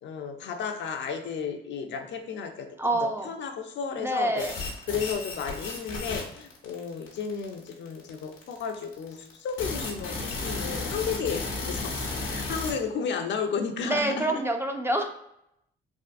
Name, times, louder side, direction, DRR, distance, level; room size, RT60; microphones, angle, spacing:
voice 1, 0.0-4.5 4.9-11.9 12.2-14.4, left 6 dB, 65° left, 5 dB, 0.5 m, -33 dB
voice 2, 2.8-3.3 4.0-4.6 13.8-15.1, right 1 dB, 10° right, 4 dB, 0.3 m, -27 dB
sound 1, 4.4-12.7, left 3 dB, 90° left, 0.9 m, -34 dB
3.5 x 2.5 x 2.4 m, 0.78 s
cardioid pair, 90°, 20 cm